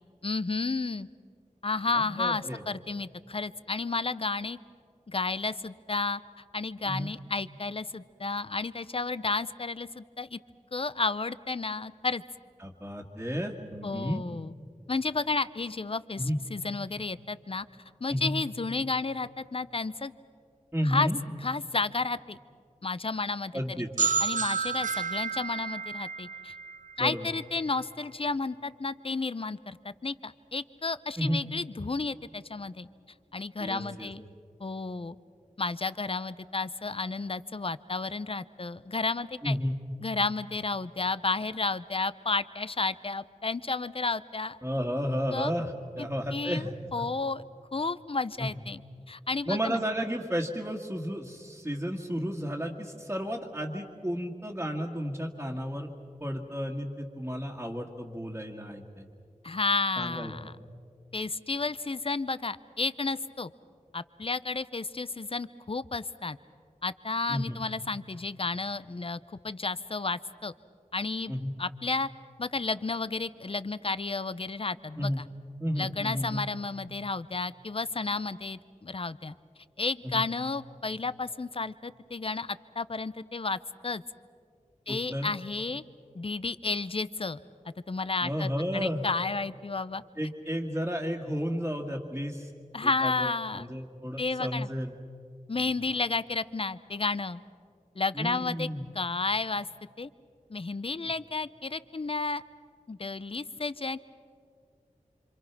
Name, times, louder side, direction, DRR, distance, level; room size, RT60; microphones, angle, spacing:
voice 1, 0.2-1.1 1.6-4.6 5.1-6.2 6.5-10.4 10.7-12.2 13.8-14.5 14.9-16.2 16.5-17.7 18.0-20.1 20.8-21.1 21.4-22.4 22.8-26.5 27.0-32.9 33.3-34.2 34.6-35.2 35.6-39.6 40.0-44.6 45.3-45.5 46.0-46.6 46.9-47.4 47.7-48.8 49.1-49.8 59.4-60.5 61.1-63.5 63.9-66.4 66.8-70.5 70.9-71.3 71.6-72.1 72.4-75.3 75.8-79.3 79.8-84.0 84.9-85.8 86.1-87.4 87.9-90.0 92.7-93.7 94.2-94.7 95.5-97.4 98.0-98.7 98.9-99.7 100.0-100.1 100.5-102.4 102.9-104.1, left 3 dB, 45° left, 15 dB, 0.7 m, -32 dB
voice 2, 1.9-2.6 6.9-7.1 12.6-14.2 16.2-16.4 18.1-18.4 20.7-21.2 23.5-24.1 27.0-27.3 31.2-31.4 33.6-34.1 39.4-39.8 44.6-47.1 48.4-48.5 49.5-55.9 56.2-59.1 60.0-60.5 67.3-67.6 71.3-71.5 75.0-75.2 75.6-76.5 80.0-80.2 84.9-85.3 88.2-89.0 90.2-92.5 92.8-95.0 98.1-98.9, equal, 15° right, -4 dB, 1.9 m, -32 dB
sound 1, 24.0-27.6, right 5 dB, 75° right, 0.5 m, -31 dB
27.0 x 26.0 x 6.1 m, 2.3 s
wide cardioid pair, 50°, 13 cm